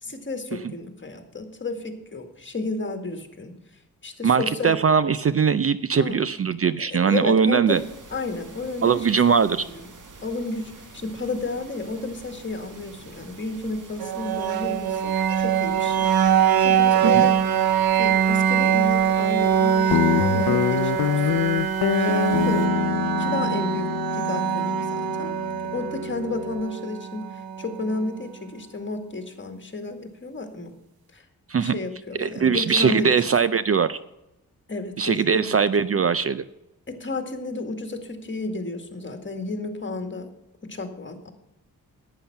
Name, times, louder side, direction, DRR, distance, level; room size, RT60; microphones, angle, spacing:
voice 1, 0.0-3.5 4.0-4.7 6.0-6.2 6.9-7.8 8.1-9.1 9.4-9.9 10.2-16.1 16.3-17.4 17.9-21.4 22.0-22.7 23.2-23.9 24.1-25.3 25.7-30.7 31.1-31.2 31.6-33.1 34.7-35.6 36.9-40.3 40.7-41.3, left 3 dB, 35° left, 6 dB, 2.0 m, -32 dB
voice 2, 4.2-7.8 8.8-9.6 17.0-17.3 31.5-31.8 32.2-34.0 35.0-36.4, right 6 dB, 40° right, 15 dB, 0.5 m, -21 dB
sound 1, 7.7-22.7, right 3 dB, 60° right, 1.8 m, -46 dB
sound 2, 14.0-27.9, right 8 dB, 85° right, 0.8 m, -23 dB
Guitar, 19.9-26.6, left 11 dB, 90° left, 0.5 m, -26 dB
11.0 x 9.0 x 5.8 m, 0.90 s
cardioid pair, 70°, 35 cm